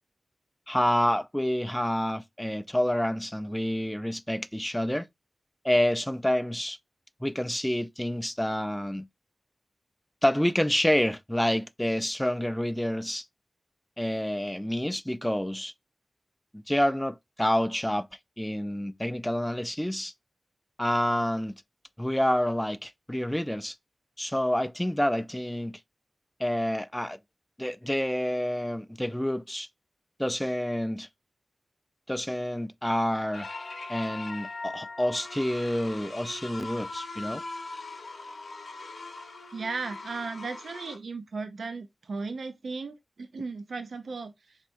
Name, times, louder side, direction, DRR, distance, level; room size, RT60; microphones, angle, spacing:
voice 1, 0.7-5.1 5.6-6.8 7.2-9.1 10.2-13.2 14.0-15.7 16.5-18.1 18.4-20.1 20.8-21.6 22.0-23.7 24.2-25.8 26.4-27.2 27.6-29.7 30.2-31.1 32.1-33.5 33.9-37.4, left 1 dB, 10° left, 0.3 m, -28 dB
sound 1, 33.3-41.0, left 3 dB, 80° left, 0.7 m, -40 dB
voice 2, 39.5-44.6, right 4 dB, 85° right, 0.4 m, -36 dB
4.3 x 3.4 x 2.5 m
cardioid pair, 45°, 0 cm